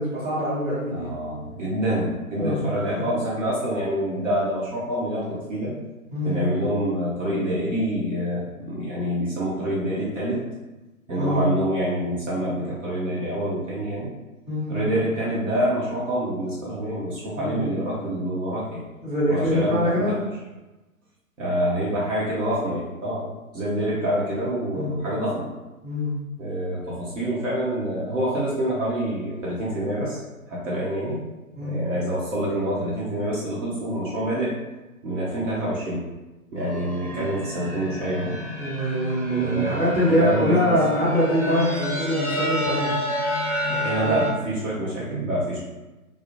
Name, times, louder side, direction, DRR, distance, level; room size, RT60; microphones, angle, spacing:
voice 1, 0.0-1.1 2.4-2.6 2.9-3.0 6.1-6.4 11.2-11.4 14.5-14.7 17.4-17.5 19.0-20.1 24.7-25.0 25.8-26.1 31.6-31.8 37.1-37.3 38.6-42.9 43.7-44.2, equal, 20° right, -11 dB, 1.1 m, -24 dB
voice 2, 0.9-5.7 6.2-10.4 11.1-14.1 14.7-18.8 19.3-20.1 21.4-25.5 26.4-30.2 30.5-31.2 31.6-34.5 35.0-36.1 36.5-38.4 39.4-40.7 43.5-45.6, right 1 dB, 55° right, -7 dB, 0.8 m, -26 dB
sound 1, 36.6-44.3, left 1 dB, ahead, 0.5 m, -30 dB
2.3 x 2.0 x 2.9 m, 1.1 s
figure-of-eight pair, 140°, 45 cm